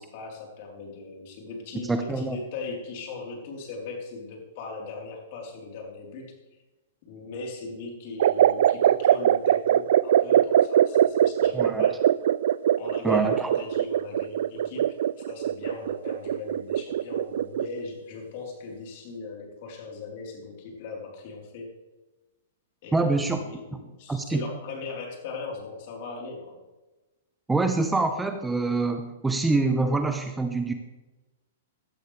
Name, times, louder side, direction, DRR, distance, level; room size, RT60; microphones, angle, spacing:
voice 1, 0.0-6.3 7.1-12.0 12.8-14.8 15.3-21.7 22.8-26.6, left 3 dB, 50° left, 0 dB, 4.1 m, -39 dB
voice 2, 1.8-2.4 11.5-11.9 13.0-13.5 22.9-23.4 24.1-24.4 27.5-30.7, right 3 dB, 10° right, 7 dB, 0.9 m, -25 dB
sound 1, 8.2-17.8, right 11 dB, 65° right, 0.4 m, -22 dB
16.0 x 12.5 x 3.5 m, 1.1 s
hypercardioid pair, 115°, 0 cm